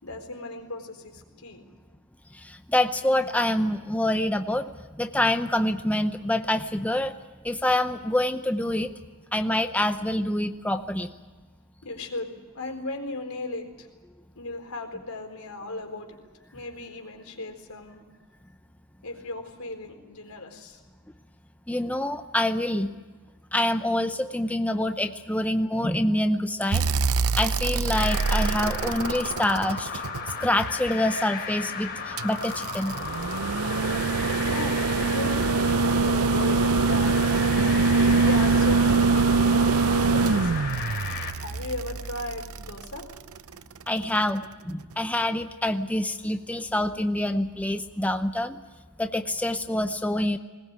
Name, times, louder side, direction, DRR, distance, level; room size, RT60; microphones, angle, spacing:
voice 1, 0.0-1.7 11.8-13.9 14.4-16.2 16.5-18.0 19.0-20.8 34.3-37.4 38.2-40.7 41.4-43.1, left 2 dB, 85° left, 3 dB, 4.2 m, -36 dB
voice 2, 2.3-7.1 7.4-8.9 9.3-11.1 21.7-22.9 23.5-26.9 27.4-30.0 30.4-33.0 43.9-48.6 49.0-50.4, left 1 dB, 5° left, 7 dB, 0.7 m, -26 dB
sound 1, 26.7-30.9 32.2-43.4 44.9-45.0, right 4 dB, 90° right, 0.7 m, -24 dB
sound 2, 27.9-41.3, left 5 dB, 50° left, 3.4 m, -35 dB
20.5 x 20.0 x 8.9 m, 1.4 s
head